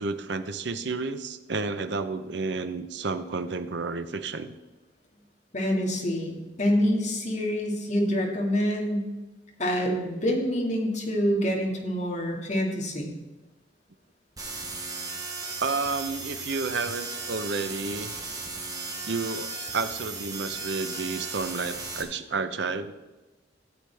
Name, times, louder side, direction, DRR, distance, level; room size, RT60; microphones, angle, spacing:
voice 1, 0.0-4.5 15.6-18.2 19.0-22.9, right 4 dB, 65° right, 10 dB, 0.6 m, -31 dB
voice 2, 5.5-9.1 9.6-13.2, equal, 40° left, -1 dB, 2.0 m, -26 dB
sound 1, 14.4-22.0, right 3 dB, 20° right, 1.2 m, -36 dB
13.5 x 7.9 x 3.4 m, 1.1 s
head